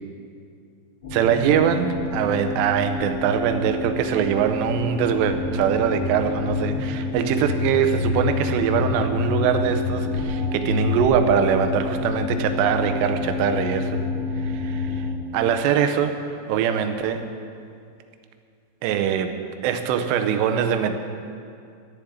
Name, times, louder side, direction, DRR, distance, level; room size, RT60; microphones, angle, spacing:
sound 1, 1.0-15.1, left 3 dB, 40° left, 2.2 m, -27 dB
voice 1, 1.1-14.0 14.4-15.1 15.3-16.2 16.5-17.2 18.8-21.0, right 8 dB, 80° right, 7 dB, 2.8 m, -23 dB
11.5 x 7.1 x 9.3 m, 2.4 s
omnidirectional pair, 5.1 m